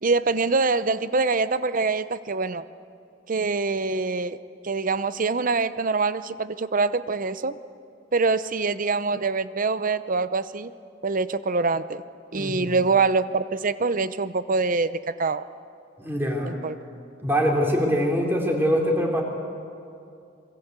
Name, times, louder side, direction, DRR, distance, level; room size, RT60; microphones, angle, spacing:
voice 1, 0.0-2.6 3.3-4.4 4.6-7.6 8.1-10.7 11.0-12.0 12.3-15.5 16.5-16.8, right 4 dB, 45° right, 14 dB, 0.8 m, -24 dB
voice 2, 12.3-12.7 16.0-16.5 17.2-19.2, equal, 10° right, 0 dB, 3.8 m, -23 dB
26.5 x 23.0 x 8.2 m, 2.5 s
head